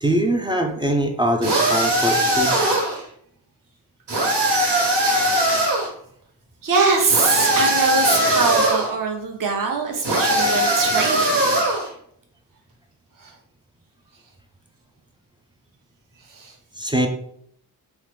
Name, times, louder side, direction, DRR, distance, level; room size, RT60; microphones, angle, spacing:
voice 1, 0.0-2.6 16.8-17.1, right 1 dB, 15° right, 3 dB, 0.3 m, -22 dB
sound 1, 1.4-3.0 4.1-5.9 7.1-8.9 10.0-11.9, right 1 dB, 85° right, 1.3 m, -20 dB
voice 2, 6.6-11.3 13.2-13.3 16.3-16.5, right 4 dB, 55° right, 2 dB, 0.8 m, -22 dB
3.0 x 2.0 x 3.3 m, 0.66 s
cardioid pair, 80°, 39 cm